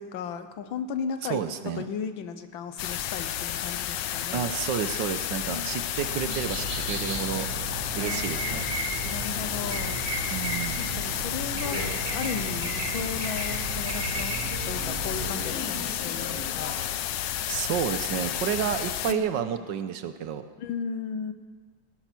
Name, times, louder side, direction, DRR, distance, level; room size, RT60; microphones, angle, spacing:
voice 1, 0.0-4.5 5.5-5.7 6.2-6.4 7.2-7.5 9.0-10.3 10.8-16.8 19.1-19.3 19.6-19.7 20.6-21.3, left 6 dB, 90° left, 10 dB, 1.7 m, -36 dB
voice 2, 1.3-1.9 4.3-7.5 7.9-8.7 10.3-10.9 17.5-20.5, right 9 dB, 70° right, 10 dB, 1.4 m, -30 dB
sound 1, 2.8-19.1, left 11 dB, 70° left, 1.3 m, -32 dB
sound 2, 6.0-15.3, right 3 dB, 40° right, 2.2 m, -34 dB
sound 3, 7.7-16.9, left 2 dB, 55° left, 4.3 m, -41 dB
17.5 x 11.0 x 6.0 m, 1.5 s
omnidirectional pair, 2.1 m